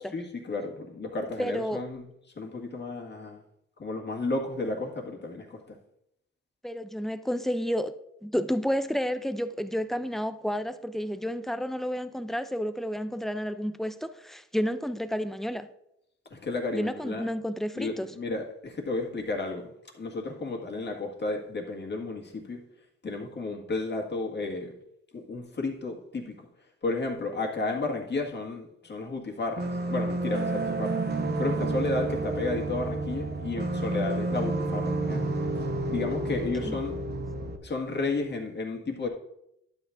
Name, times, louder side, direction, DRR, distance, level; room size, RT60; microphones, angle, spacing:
voice 1, 0.1-2.1 2.4-3.4 3.8-5.8 16.3-17.2 17.8-22.6 23.0-24.7 25.1-26.5 26.8-31.0 31.4-35.4 35.9-37.0 37.6-39.1, left 3 dB, 35° left, 1.8 m, -32 dB
voice 2, 1.4-1.8 6.6-7.9 8.2-15.7 16.7-18.1 36.3-36.4 36.6-36.8, equal, ahead, 0.5 m, -30 dB
sound 1, 29.6-37.6, right 2 dB, 35° right, 1.0 m, -30 dB
11.5 x 8.3 x 2.6 m
cardioid pair, 90°, 30 cm